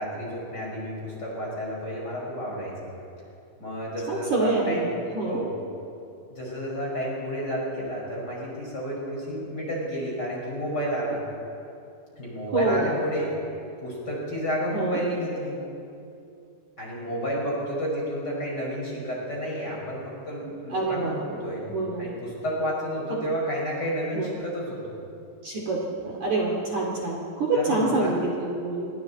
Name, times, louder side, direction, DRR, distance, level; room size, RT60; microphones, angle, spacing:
voice 1, 0.0-2.9 3.6-4.9 5.3-5.6 6.3-11.2 12.1-13.3 13.8-15.6 16.8-21.7 22.0-25.0 27.5-28.3, equal, 20° left, -4 dB, 5.6 m, -31 dB
voice 2, 4.1-5.4 12.5-12.9 14.7-15.0 20.7-21.1 21.6-22.1 24.1-24.3 25.4-28.9, right 2 dB, 45° right, -3 dB, 3.4 m, -26 dB
27.5 x 24.0 x 4.2 m, 2.6 s
omnidirectional pair, 5.1 m